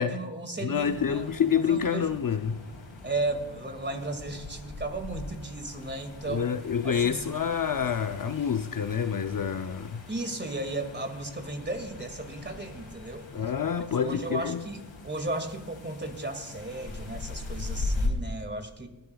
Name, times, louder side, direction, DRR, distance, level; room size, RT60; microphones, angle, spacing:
voice 1, 0.1-2.1 3.0-6.5 6.8-7.3 10.1-13.3 13.9-18.9, right 2 dB, 20° right, 2.1 m, -35 dB
voice 2, 0.6-2.6 6.3-10.0 13.3-14.6, left 7 dB, 45° left, 0.6 m, -28 dB
sound 1, 0.7-18.1, left 2 dB, 75° left, 3.6 m, -40 dB
23.0 x 12.0 x 2.3 m
wide cardioid pair, 85°, 47 cm